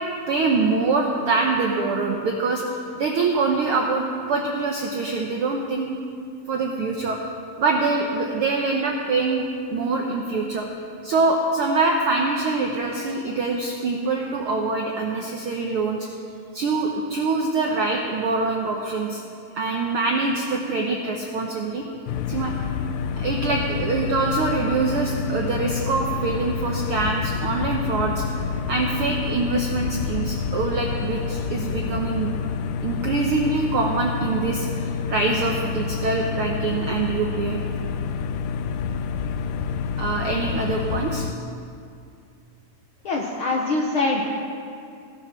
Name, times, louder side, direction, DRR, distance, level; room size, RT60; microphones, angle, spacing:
voice 1, 0.3-5.9 6.5-7.2 7.6-10.7 11.0-16.1 16.5-19.2 19.5-21.8 22.3-22.5 23.2-28.2 28.7-32.3 32.8-37.6 40.0-41.3, right 3 dB, 75° right, 1 dB, 1.2 m, -24 dB
sound 1, 22.1-41.3, left 6 dB, 85° left, 2.2 m, -28 dB
voice 2, 43.0-44.3, left 2 dB, 70° left, -1 dB, 1.3 m, -23 dB
17.0 x 10.0 x 6.0 m, 2.4 s
omnidirectional pair, 3.7 m